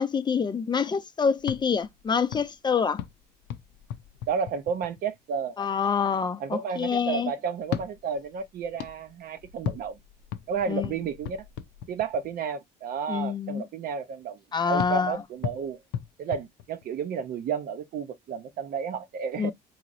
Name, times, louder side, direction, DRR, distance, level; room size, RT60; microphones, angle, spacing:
voice 1, 0.0-3.0 5.6-7.3 10.7-10.9 13.1-13.6 14.5-15.2 19.4-19.5, left 6 dB, 25° left, 0.4 m, -26 dB
sound 1, 1.4-5.2 7.6-12.4 14.8-17.2, left 10 dB, 85° left, 0.5 m, -38 dB
voice 2, 4.3-5.6 6.4-10.0 10.5-11.4 11.9-14.4 14.7-15.8 16.2-19.5, right 6 dB, 60° right, 0.6 m, -32 dB
4.0 x 2.9 x 2.5 m
cardioid pair, 110°, 17 cm